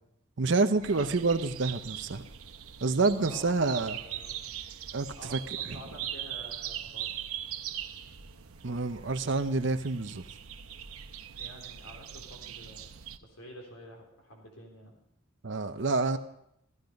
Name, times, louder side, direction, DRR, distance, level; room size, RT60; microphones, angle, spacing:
voice 1, 0.4-2.2 2.8-4.0 4.9-5.1 5.3-5.4 8.6-10.2 15.4-16.2, right 3 dB, 55° right, 9 dB, 0.7 m, -27 dB
sound 1, 0.8-13.2, right 10 dB, 90° right, 0.9 m, -41 dB
voice 2, 3.2-3.5 3.9-4.5 5.2-7.2 11.4-12.8 13.2-14.9, equal, 90° left, 0 dB, 3.6 m, -49 dB
15.0 x 14.5 x 5.2 m, 0.77 s
head